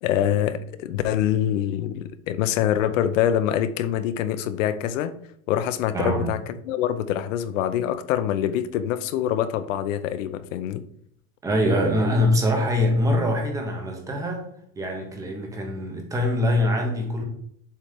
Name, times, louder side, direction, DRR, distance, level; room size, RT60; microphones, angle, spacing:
voice 1, 0.0-5.1 5.5-10.8, left 10 dB, 60° left, 13 dB, 0.7 m, -25 dB
voice 2, 5.9-6.3 11.4-14.5 14.8-17.2, left 1 dB, 10° right, 2 dB, 0.6 m, -23 dB
7.4 x 3.3 x 5.0 m, 0.68 s
supercardioid pair, 175°, 42 cm